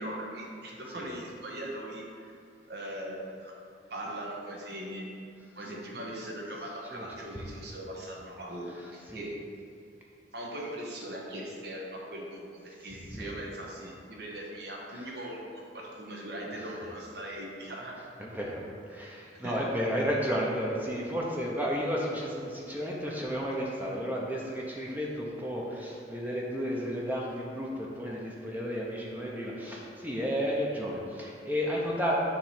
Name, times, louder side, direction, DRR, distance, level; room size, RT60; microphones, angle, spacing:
voice 1, 0.0-2.3 2.7-3.5 3.9-5.1 5.5-9.3 10.3-18.0 19.4-19.6, right 1 dB, 65° right, -2 dB, 1.2 m, -40 dB
voice 2, 8.7-9.3 12.9-13.4 13.8-13.9 14.9-15.1 16.6-16.8 18.2-32.2, equal, 10° right, -3 dB, 0.7 m, -33 dB
7.1 x 3.2 x 5.7 m, 2.4 s
head